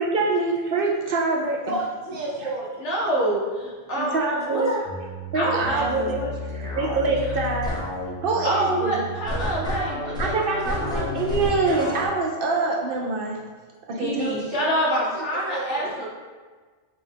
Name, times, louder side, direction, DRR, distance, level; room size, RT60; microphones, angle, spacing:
voice 1, 0.0-1.7 4.0-4.8 5.3-6.2 6.5-7.8 8.2-8.9 10.2-13.4 13.9-14.3, right 3 dB, 60° right, -1 dB, 0.6 m, -25 dB
voice 2, 1.7-2.8 13.9-15.2 15.5-16.0, right 2 dB, 90° right, -4 dB, 1.3 m, -32 dB
voice 3, 2.8-4.2 4.5-4.8 5.3-6.8 8.4-11.1 13.9-16.1, equal, 70° left, -4 dB, 1.4 m, -27 dB
sound 1, 4.8-12.1, left 1 dB, 5° left, 0.8 m, -31 dB
6.0 x 2.4 x 3.3 m, 1.4 s
omnidirectional pair, 1.2 m